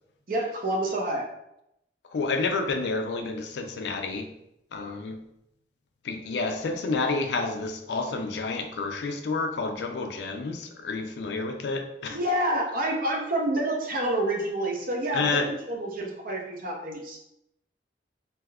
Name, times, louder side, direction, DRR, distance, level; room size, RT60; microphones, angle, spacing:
voice 1, 0.3-1.3 12.1-17.2, right 1 dB, 50° right, 0 dB, 0.6 m, -28 dB
voice 2, 2.1-4.3 4.7-5.2 6.0-12.2 15.1-15.5, left 3 dB, 70° left, 5 dB, 0.4 m, -29 dB
3.4 x 2.7 x 2.3 m, 0.81 s
head